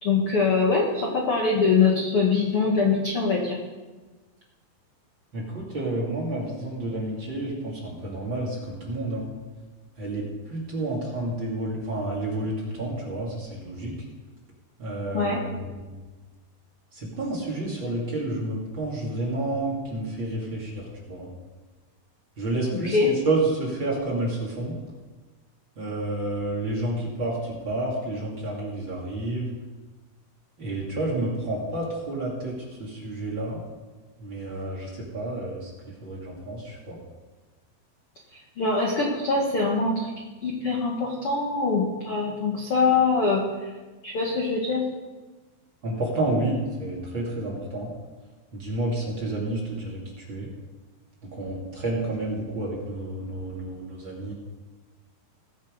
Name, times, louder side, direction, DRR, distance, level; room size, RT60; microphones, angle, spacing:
voice 1, 0.0-3.6 15.1-15.4 22.7-23.1 38.3-40.1 40.4-43.7 44.0-44.8, left 4 dB, 65° left, 0 dB, 1.4 m, -23 dB
voice 2, 5.3-9.3 10.0-14.0 14.8-16.0 16.9-21.3 22.4-24.8 25.8-29.6 30.6-33.6 34.2-35.7 36.0-37.0 45.8-47.9 48.5-50.0 50.3-50.5 51.3-54.3, right 2 dB, 30° right, -4 dB, 2.8 m, -30 dB
19.5 x 8.1 x 5.4 m, 1.3 s
omnidirectional pair, 4.9 m